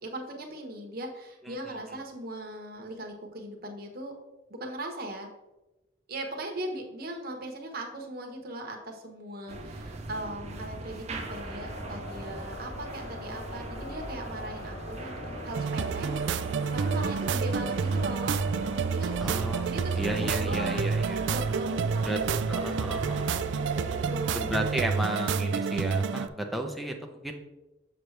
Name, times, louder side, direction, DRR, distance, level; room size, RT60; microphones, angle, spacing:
voice 1, 0.0-4.1 4.5-5.3 6.1-16.1 16.7-18.5 18.8-20.9 21.2-24.5, right 1 dB, 55° right, 2 dB, 1.1 m, -39 dB
sound 1, 9.5-24.8, right 1 dB, 40° right, 0.7 m, -40 dB
sound 2, 11.2-24.9, left 2 dB, 70° left, 1.0 m, -44 dB
sound 3, 15.5-26.3, right 6 dB, 80° right, 0.3 m, -29 dB
voice 2, 19.2-21.3 22.0-22.2 22.5-23.3 24.3-27.4, right 1 dB, ahead, 4 dB, 0.6 m, -33 dB
6.8 x 6.1 x 3.3 m, 1.0 s
head